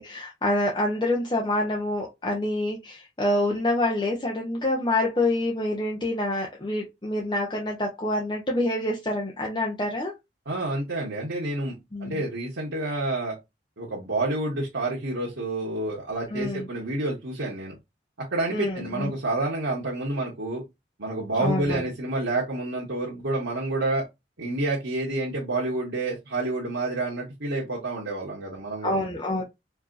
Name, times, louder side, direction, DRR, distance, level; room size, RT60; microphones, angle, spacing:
voice 1, 0.0-10.1 11.9-12.2 16.3-16.7 18.5-19.1 21.4-21.8 28.8-29.4, left 1 dB, 25° left, 0.6 m, -27 dB
voice 2, 10.5-13.3 13.8-17.7 18.3-20.6 21.0-24.0 24.4-29.0, right 2 dB, 85° right, 1.3 m, -29 dB
4.6 x 2.7 x 2.5 m
head